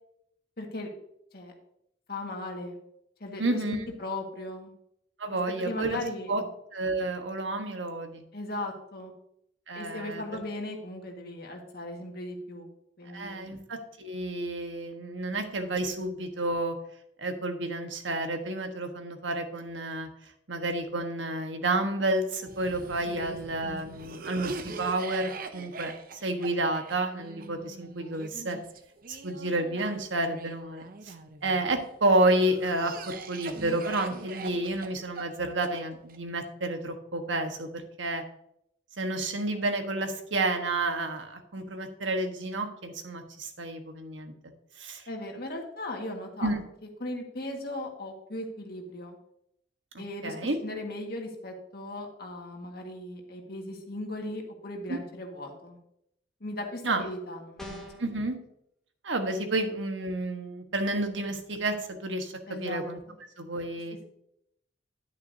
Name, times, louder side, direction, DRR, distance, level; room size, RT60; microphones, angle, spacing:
voice 1, 0.6-0.9 1.3-1.5 2.1-2.8 3.2-4.7 5.3-6.5 8.3-9.1 9.7-12.7 13.0-13.6 23.0-23.4 24.1-24.3 45.1-46.5 47.0-49.2 50.0-55.8 56.4-57.8 62.5-63.2, left 1 dB, 55° left, 2 dB, 1.8 m, -38 dB
voice 2, 3.4-3.8 5.2-6.0 6.3-6.4 6.7-8.2 9.7-10.2 13.1-16.7 17.2-20.1 20.5-25.9 26.2-28.6 29.1-31.1 31.4-38.2 39.0-44.3 44.8-45.0 46.4-46.6 50.2-50.6 54.9-55.0 56.8-57.0 58.0-58.4 59.0-62.3 62.6-63.0 63.4-64.0, right 2 dB, 85° right, 5 dB, 1.4 m, -30 dB
Cough, 22.4-31.6 32.2-36.2, right 3 dB, 50° right, 0.7 m, -42 dB
sound 1, 57.6-58.1, equal, 5° left, 1.5 m, -41 dB
10.5 x 9.6 x 2.8 m, 0.75 s
head